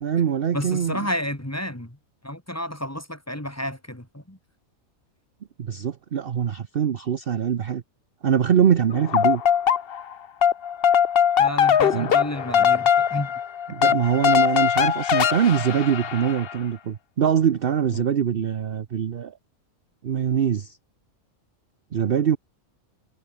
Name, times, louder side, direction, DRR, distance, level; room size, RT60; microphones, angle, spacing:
voice 1, 0.0-1.1 5.6-7.8 8.2-9.4 11.9-12.1 13.7-19.3 20.0-20.8 21.9-22.4, right 8 dB, 50° right, 0.9 m, -23 dB
voice 2, 0.5-2.0 2.2-4.4 11.4-13.3 17.9-18.0, left 1 dB, 10° left, 2.5 m, -31 dB
sound 1, 8.9-10.1 10.4-16.5, left 8 dB, 50° left, 0.9 m, -21 dB
omnidirectional pair, 1.5 m